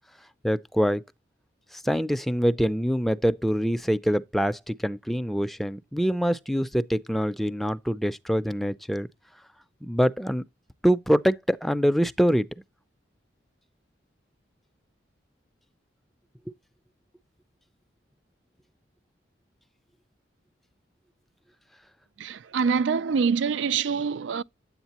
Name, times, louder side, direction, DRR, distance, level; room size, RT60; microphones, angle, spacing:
voice 1, 0.4-1.0 1.7-9.1 9.8-10.4 10.8-12.5, equal, ahead, 0.4 m, -24 dB
voice 2, 22.2-24.4, right 5 dB, 75° right, 0.4 m, -25 dB
10.0 x 8.2 x 2.9 m
head